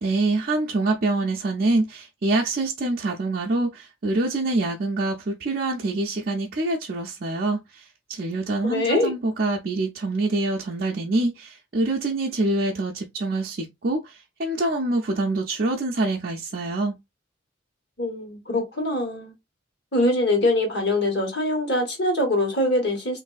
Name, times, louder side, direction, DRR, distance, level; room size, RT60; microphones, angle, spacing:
voice 1, 0.0-17.0, right 2 dB, 45° right, 0.5 m, -25 dB
voice 2, 8.6-9.1 18.0-19.3 19.9-23.2, left 1 dB, 55° left, 1.3 m, -23 dB
3.2 x 2.6 x 2.3 m
head